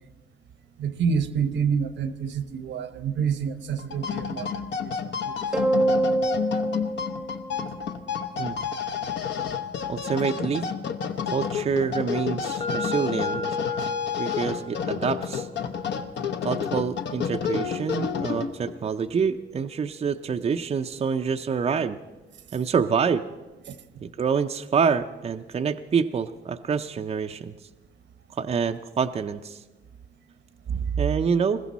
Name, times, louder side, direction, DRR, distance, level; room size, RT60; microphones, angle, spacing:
voice 1, 0.8-4.5 4.8-4.9 5.2-5.3 23.7-23.8 30.7-30.8, right 6 dB, 65° right, 12 dB, 1.0 m, -27 dB
sound 1, 3.8-18.8, left 7 dB, 60° left, 1.0 m, -30 dB
sound 2, 5.5-8.1, right 2 dB, 5° right, 0.8 m, -25 dB
voice 2, 9.9-10.7 11.3-13.5 14.2-15.5 16.4-22.0 22.5-23.3 24.0-27.5 28.3-29.6 31.0-31.6, right 6 dB, 30° right, 6 dB, 0.5 m, -26 dB
sound 3, 12.6-20.5, left 3 dB, 35° left, 1.4 m, -38 dB
20.5 x 15.0 x 4.2 m, 1.2 s
cardioid pair, 90°, 20 cm